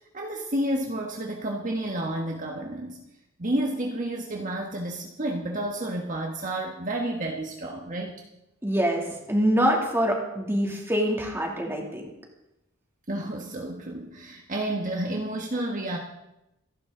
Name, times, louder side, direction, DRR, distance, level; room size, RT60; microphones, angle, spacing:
voice 1, 0.1-3.0 3.4-8.2 13.1-16.0, right 1 dB, 40° right, 0 dB, 1.5 m, -30 dB
voice 2, 8.6-12.0, equal, 10° right, 0 dB, 2.8 m, -25 dB
27.0 x 11.0 x 3.9 m, 0.90 s
head